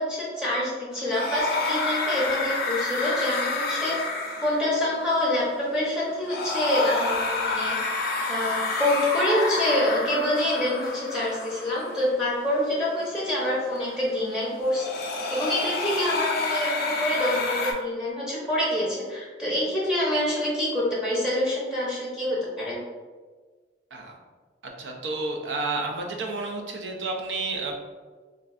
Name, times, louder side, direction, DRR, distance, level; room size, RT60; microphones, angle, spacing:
voice 1, 0.0-4.0 4.4-7.8 8.3-14.9 15.3-22.8, left 1 dB, 5° right, -7 dB, 0.7 m, -26 dB
sound 1, 0.9-17.7, left 3 dB, 60° left, 0.5 m, -30 dB
voice 2, 24.6-27.7, right 3 dB, 85° right, 1 dB, 0.5 m, -31 dB
3.1 x 2.5 x 2.4 m, 1.4 s
head